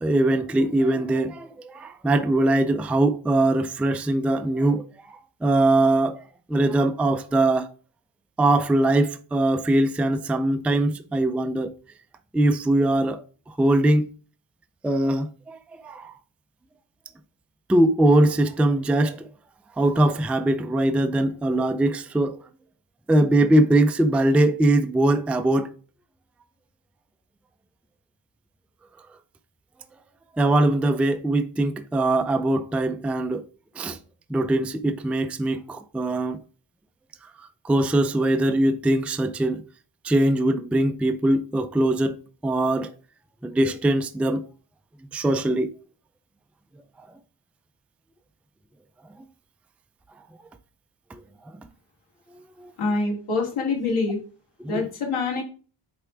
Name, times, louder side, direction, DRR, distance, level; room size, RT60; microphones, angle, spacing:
voice 1, 0.0-6.2 6.5-7.7 8.4-11.7 12.3-13.2 13.6-14.1 14.8-15.6 15.8-16.1 17.7-19.3 19.8-22.4 23.1-25.7 30.4-33.4 33.8-34.0 34.3-36.4 37.6-39.6 40.0-42.9 43.4-44.5 45.1-45.7 51.1-51.2 52.6-52.7 54.6-54.8, right 1 dB, 5° right, 0.4 m, -21 dB
voice 2, 52.8-54.2 54.7-55.4, left 3 dB, 85° left, 3.0 m, -25 dB
8.6 x 3.4 x 4.6 m
wide cardioid pair, 135°, 49 cm